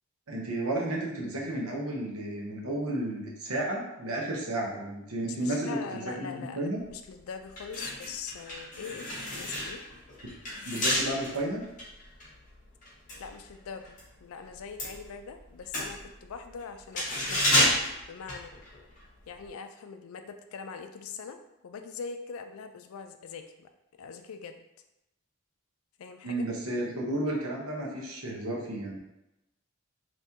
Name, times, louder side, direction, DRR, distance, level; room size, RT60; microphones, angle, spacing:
voice 1, 0.3-6.8 10.6-11.6 26.2-29.0, right 1 dB, 80° right, -2 dB, 0.9 m, -32 dB
voice 2, 5.2-9.8 13.2-17.7 18.1-18.5 19.3-23.7 24.0-24.6 26.0-26.5, left 5 dB, 75° left, 7 dB, 0.4 m, -42 dB
sound 1, 6.9-7.0 7.5-14.1 14.4-19.0 19.3-19.5, equal, 35° left, 1.1 m, -31 dB
3.6 x 3.0 x 2.8 m, 0.91 s
head